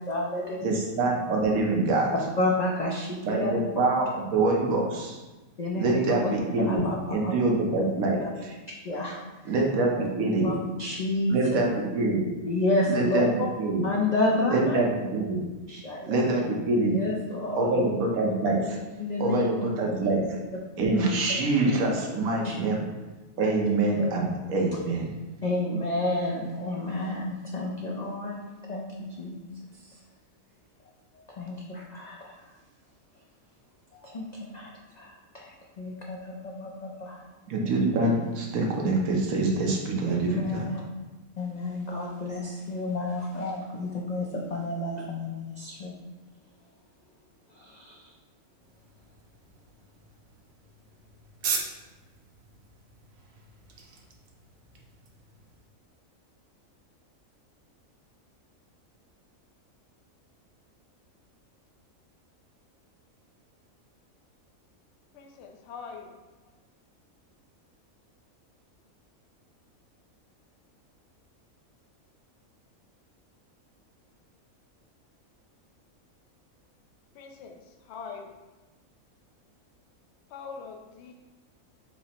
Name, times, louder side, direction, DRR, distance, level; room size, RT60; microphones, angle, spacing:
voice 1, 0.0-0.7 2.4-3.8 5.6-7.3 8.2-8.3 8.8-9.2 9.5-9.6 10.0-10.1 10.4-11.6 12.5-13.2 13.8-14.8 15.7-16.2 16.9-17.9 18.6-18.7 19.0-19.5 22.4-22.6 23.4-23.6 23.9-24.1 25.4-28.4 28.7-29.5 29.8-29.9 31.4-32.3 33.9-34.7 35.0-37.2 40.1-40.8 41.4-45.9 47.6-48.1, left 2 dB, 85° left, -2 dB, 0.3 m, -30 dB
voice 2, 0.6-2.1 3.2-5.2 5.7-8.5 9.4-10.5 11.3-12.3 12.9-13.3 13.6-13.8 14.5-15.4 16.0-17.0 17.6-18.8 19.2-20.2 20.8-22.8 23.4-25.1 37.5-40.7, right 2 dB, 80° right, 0 dB, 1.2 m, -25 dB
sound 1, 48.6-55.7, right 5 dB, 60° right, 0.6 m, -40 dB
voice 3, 65.1-66.1 77.1-77.6 77.9-78.3 80.3-81.1, left 5 dB, 65° left, 3 dB, 0.8 m, -42 dB
6.0 x 2.0 x 4.2 m, 1.2 s
omnidirectional pair, 1.5 m